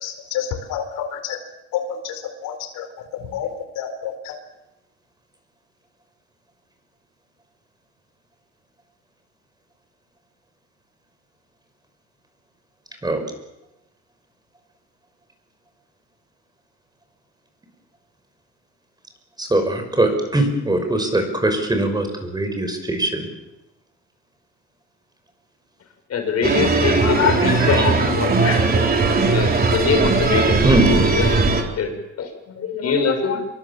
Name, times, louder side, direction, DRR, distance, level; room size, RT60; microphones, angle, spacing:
voice 1, 0.0-1.4 1.7-1.8 2.4-2.9 3.3-3.5 3.8-4.3, left 9 dB, 85° left, 7 dB, 4.5 m, -28 dB
voice 2, 19.4-23.3 27.6-27.8 30.6-30.9, right 1 dB, 15° right, 6 dB, 5.7 m, -21 dB
voice 3, 26.1-29.0 29.3-30.6 30.9-31.9 32.2-33.4, left 5 dB, 55° left, 5 dB, 6.6 m, -23 dB
sound 1, 26.4-31.6, right 4 dB, 30° right, 3.8 m, -18 dB
26.0 x 23.5 x 7.5 m, 0.93 s
cardioid pair, 120°, 31 cm